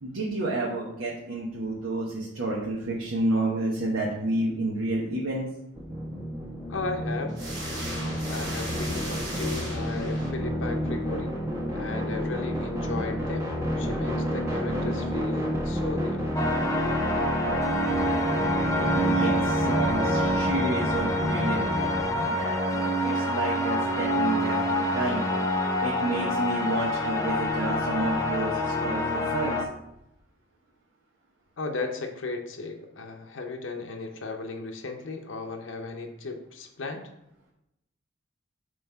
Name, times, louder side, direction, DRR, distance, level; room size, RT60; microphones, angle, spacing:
voice 1, 0.0-5.4 18.8-25.2 25.8-29.5, right 2 dB, 85° right, -4 dB, 1.0 m, -30 dB
sound 1, 5.7-22.2, equal, 15° right, 1.0 m, -30 dB
voice 2, 6.7-7.3 8.3-11.4 11.7-13.5 13.8-16.3 31.6-37.1, left 3 dB, 75° left, 4 dB, 0.6 m, -35 dB
sound 2, 7.3-10.7, right 1 dB, 65° right, 2.0 m, -36 dB
sound 3, 16.3-29.6, equal, 15° left, 0.5 m, -26 dB
5.5 x 3.2 x 5.4 m, 0.84 s
head